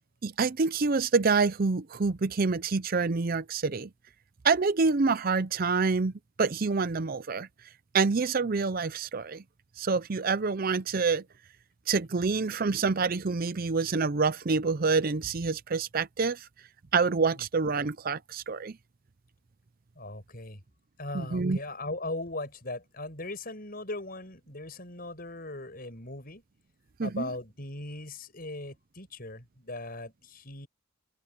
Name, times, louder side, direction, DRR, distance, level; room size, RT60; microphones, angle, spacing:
voice 1, 0.2-3.9 4.4-6.1 6.4-7.5 7.9-9.4 9.8-11.2 11.9-16.5 16.9-18.7 21.1-21.6 27.0-27.3, right 4 dB, 40° right, 0.5 m, -27 dB
voice 2, 19.9-20.6 21.0-26.4 27.0-30.7, left 2 dB, 40° left, 6.5 m, -39 dB
open air
head